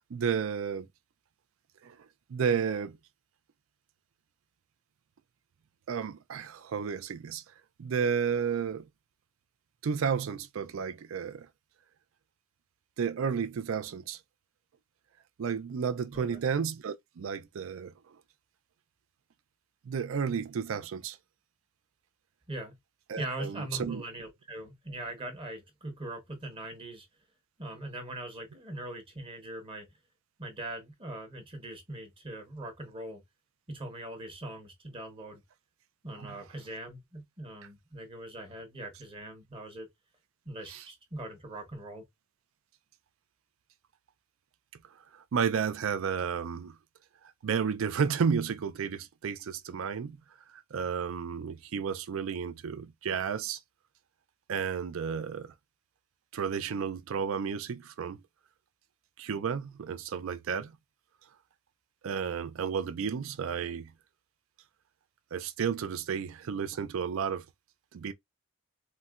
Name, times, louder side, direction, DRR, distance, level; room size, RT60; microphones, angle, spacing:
voice 1, 0.1-0.9 1.8-2.0 2.3-3.0 5.9-7.4 7.8-8.9 9.8-11.5 13.0-14.2 15.4-18.2 19.9-21.2 23.1-24.0 36.2-36.4 40.7-40.8 45.1-46.8 47.4-50.2 50.5-53.6 54.5-55.5 56.3-58.2 59.2-60.7 62.0-63.9 65.3-67.4 67.9-68.1, right 6 dB, 65° right, 0.4 m, -32 dB
voice 2, 23.2-27.1 27.6-29.9 30.4-33.2 33.7-35.4 36.0-39.9 40.4-42.0, right 1 dB, 25° right, 0.9 m, -41 dB
4.0 x 2.1 x 2.3 m
head